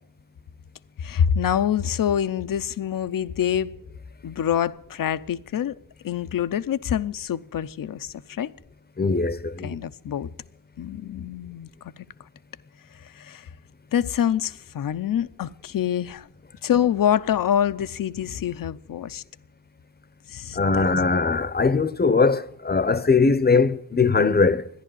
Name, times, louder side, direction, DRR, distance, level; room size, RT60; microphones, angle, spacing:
voice 1, 1.0-3.7 4.2-5.7 6.0-8.5 9.6-10.3 10.8-12.1 12.9-13.5 13.9-16.3 16.6-19.2 20.3-20.9, left 9 dB, 50° left, 0.8 m, -26 dB
voice 2, 9.0-9.8 20.5-24.7, left 4 dB, 25° left, 0.9 m, -20 dB
14.0 x 10.5 x 9.3 m
cardioid pair, 80°, 41 cm